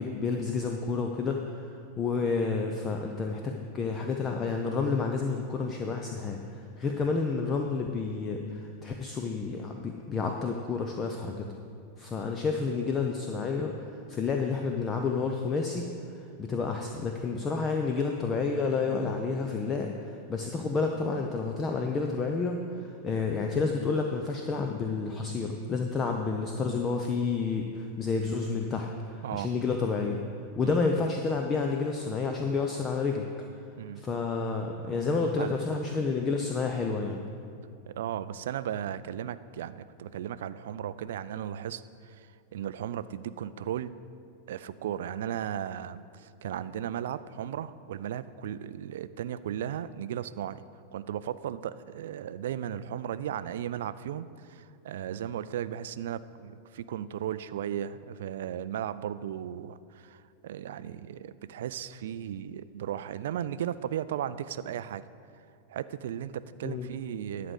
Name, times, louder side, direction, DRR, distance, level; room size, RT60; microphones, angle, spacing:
voice 1, 0.0-11.4 12.0-15.8 16.2-30.2 30.6-33.3 34.0-37.2 66.6-66.9, left 4 dB, 25° left, 3 dB, 0.7 m, -30 dB
voice 2, 35.4-36.1 37.9-42.3 42.5-43.9 44.5-50.6 50.9-65.0 65.7-67.5, right 10 dB, 60° right, 15 dB, 0.3 m, -36 dB
11.0 x 5.1 x 8.0 m, 2.5 s
figure-of-eight pair, 90°, 0 cm